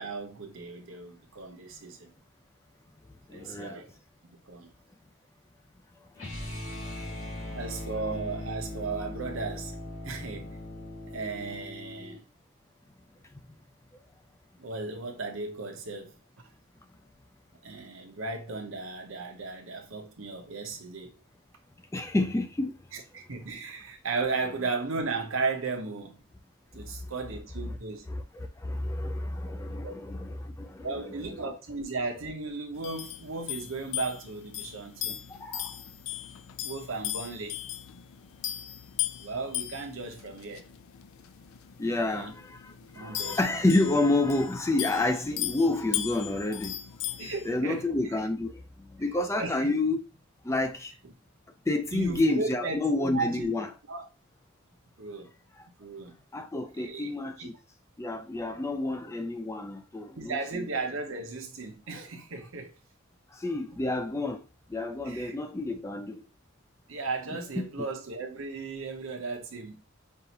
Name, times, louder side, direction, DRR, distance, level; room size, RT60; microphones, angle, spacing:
voice 1, 0.0-2.1 3.3-3.9 4.5-4.7 7.5-9.8 10.0-10.6 11.1-12.3 14.6-16.1 17.6-21.2 22.9-26.2 26.7-28.0 29.8-29.9 30.8-35.2 36.6-37.6 39.2-40.7 41.9-42.3 42.9-43.4 47.2-47.9 49.3-49.8 51.0-51.1 51.9-53.5 53.9-54.1 55.0-55.3 55.8-56.1 56.7-57.1 57.4-57.5 60.2-62.7 65.0-65.4 66.9-69.8, right 3 dB, 70° right, 0.8 m, -35 dB
voice 2, 3.3-3.8 6.9-7.0 7.4-7.6 21.9-22.7 28.1-31.4 35.4-35.7 41.8-46.7 47.5-50.0 50.4-50.9 51.7-53.7 56.3-57.5 58.0-60.7 63.4-64.4 64.7-66.2 67.6-67.7, left 2 dB, 15° left, 0.3 m, -29 dB
sound 1, 6.2-12.2, left 1 dB, 65° left, 2.1 m, -39 dB
sound 2, 32.7-47.5, left 13 dB, 85° left, 0.4 m, -38 dB
5.5 x 2.5 x 2.8 m
head